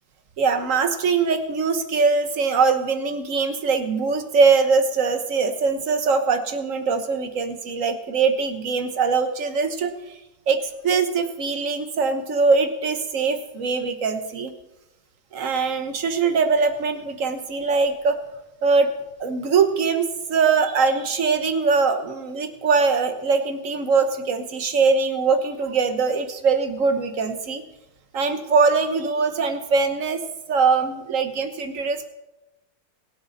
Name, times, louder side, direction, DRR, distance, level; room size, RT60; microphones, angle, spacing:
voice 1, 0.4-10.1 10.5-14.5 15.3-18.2 18.6-18.9 19.2-27.6 28.1-30.2 30.5-32.1, right 4 dB, 45° right, 8 dB, 1.2 m, -22 dB
22.0 x 8.1 x 4.0 m, 0.96 s
omnidirectional pair, 2.3 m